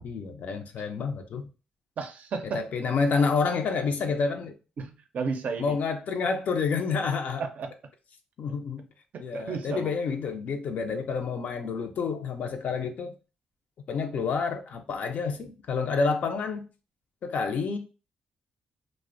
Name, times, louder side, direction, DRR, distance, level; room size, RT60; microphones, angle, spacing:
voice 1, 0.0-1.5 2.5-4.5 5.6-7.4 8.4-8.9 9.2-13.1 13.9-16.6 17.2-17.8, left 5 dB, 60° left, 0.4 m, -28 dB
voice 2, 2.0-2.6 4.8-5.7 7.4-7.7 9.1-10.0, right 4 dB, 60° right, 0.4 m, -33 dB
2.5 x 2.0 x 2.4 m
supercardioid pair, 60°, 3 cm